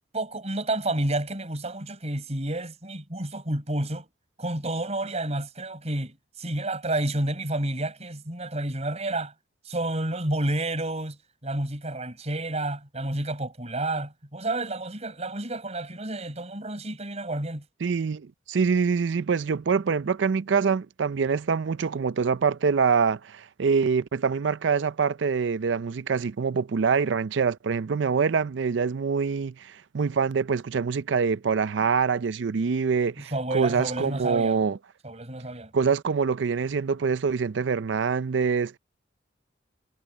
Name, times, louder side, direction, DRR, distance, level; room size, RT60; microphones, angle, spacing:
voice 1, 0.1-4.1 4.4-9.3 9.6-11.2 11.4-17.6 33.2-34.6 35.0-35.7, right 1 dB, 35° right, 5.7 m, -30 dB
voice 2, 17.8-34.8 35.7-38.8, right 5 dB, 65° right, 0.4 m, -25 dB
head